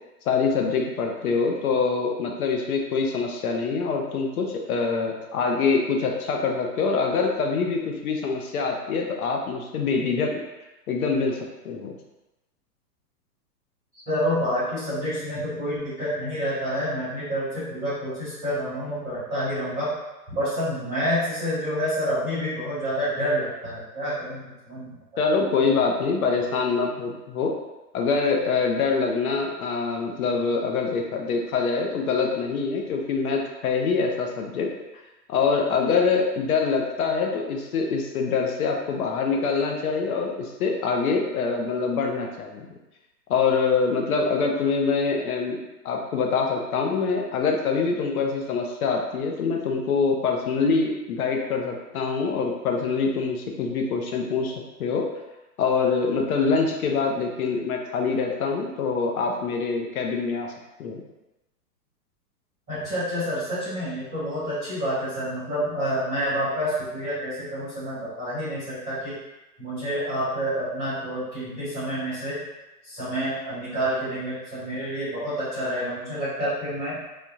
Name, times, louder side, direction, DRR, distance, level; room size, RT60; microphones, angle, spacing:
voice 1, 0.3-10.3 10.9-11.4 11.6-11.9 25.2-27.5 27.9-34.7 35.3-42.7 43.3-45.6 45.8-54.5 54.8-55.1 55.6-60.5 60.8-61.0, left 4 dB, 60° left, 1 dB, 0.7 m, -25 dB
voice 2, 14.1-19.9 20.3-25.2 62.7-69.1 69.6-72.4 72.8-77.0, equal, 5° right, -31 dB, 0.4 m, -28 dB
3.5 x 2.3 x 2.7 m, 1.0 s
hypercardioid pair, 155°, 49 cm